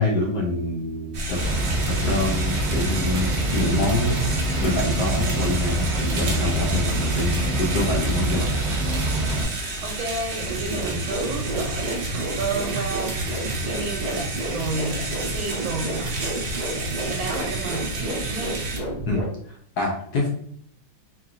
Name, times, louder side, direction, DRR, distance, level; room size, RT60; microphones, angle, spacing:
voice 1, 0.0-1.4 2.0-4.2 4.6-8.5 19.1-20.3, left 2 dB, 70° left, 0 dB, 1.0 m, -26 dB
sound 1, 1.1-18.8, right 2 dB, 60° right, 0.9 m, -32 dB
sound 2, 1.4-9.4, right 1 dB, ahead, 0.8 m, -25 dB
voice 2, 9.8-16.1 16.8-18.6, right 3 dB, 90° right, -2 dB, 1.4 m, -32 dB
sound 3, 10.4-19.3, right 1 dB, 35° right, 0.6 m, -30 dB
2.9 x 2.8 x 2.5 m, 0.62 s
omnidirectional pair, 2.1 m